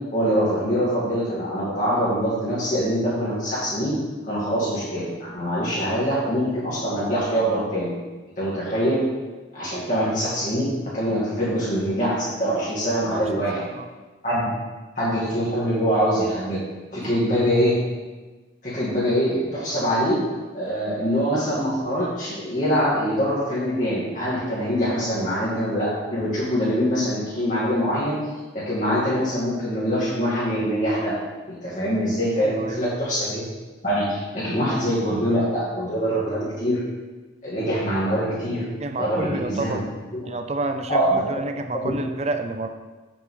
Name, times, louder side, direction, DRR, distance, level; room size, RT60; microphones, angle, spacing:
voice 1, 0.1-3.9 4.2-7.9 8.4-9.0 9.5-13.6 14.2-14.5 15.0-16.6 16.9-17.7 18.6-20.2 20.5-28.2 28.5-31.1 31.5-33.4 33.8-36.8 37.4-38.6 39.0-39.8 40.1-40.3 40.9-41.2 41.7-42.0, equal, 40° left, -10 dB, 2.2 m, -24 dB
voice 2, 13.5-13.9 32.4-32.8 38.8-39.8 40.2-42.7, right 2 dB, 35° right, 7 dB, 0.5 m, -29 dB
7.4 x 7.0 x 3.8 m, 1.2 s
head